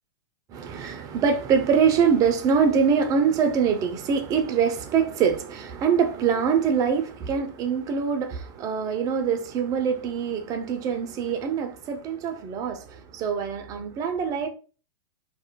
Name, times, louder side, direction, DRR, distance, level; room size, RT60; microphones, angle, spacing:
voice 1, 0.5-14.5, right 6 dB, 30° right, 0.4 m, -24 dB
2.4 x 2.0 x 2.8 m
hypercardioid pair, 105°, 12 cm